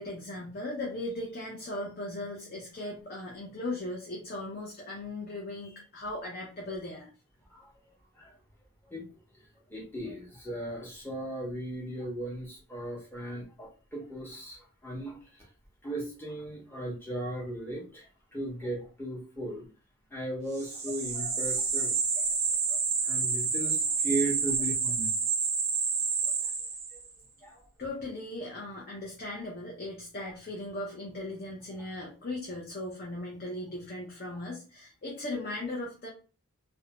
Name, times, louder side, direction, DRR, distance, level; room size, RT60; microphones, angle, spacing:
voice 1, 0.0-7.1 27.8-36.1, left 2 dB, 40° left, -2 dB, 0.6 m, -38 dB
voice 2, 7.5-8.4 8.9-15.5 15.8-19.7 20.1-25.1 26.2-26.5 26.9-27.0 27.4-27.7 31.8-31.9, right 1 dB, 10° left, -3 dB, 0.8 m, -37 dB
sound 1, 20.6-27.1, right 5 dB, 30° right, 0.6 m, -29 dB
2.6 x 2.1 x 2.8 m, 0.36 s
head